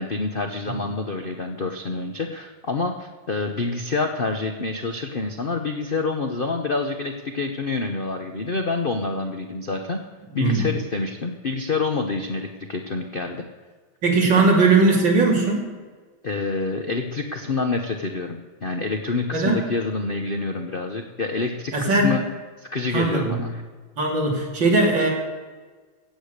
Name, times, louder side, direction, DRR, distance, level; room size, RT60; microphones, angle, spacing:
voice 1, 0.0-10.0 10.3-13.4 16.2-22.2 22.6-23.6, left 3 dB, 55° left, 4 dB, 0.6 m, -27 dB
voice 2, 10.3-10.7 14.0-15.7 19.3-19.6 21.7-22.2 22.9-23.4 24.0-25.1, right 3 dB, 60° right, -1 dB, 3.5 m, -19 dB
16.0 x 8.5 x 6.6 m, 1.4 s
omnidirectional pair, 2.3 m